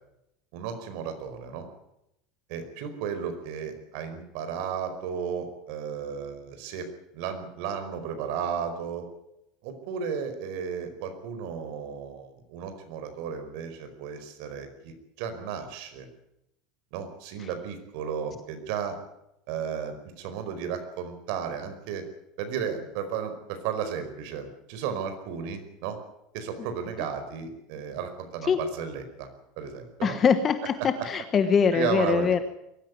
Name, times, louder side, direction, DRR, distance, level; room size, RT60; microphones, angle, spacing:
voice 1, 0.5-1.7 2.5-6.9 7.1-9.1 9.6-16.1 16.9-19.0 19.5-22.0 22.4-26.0 26.3-29.3 29.6-30.2 31.7-32.3, right 7 dB, 60° right, 8 dB, 4.8 m, -34 dB
voice 2, 30.0-32.4, left 6 dB, 25° left, 9 dB, 1.2 m, -23 dB
22.5 x 14.5 x 9.6 m, 0.83 s
supercardioid pair, 160°, 0 cm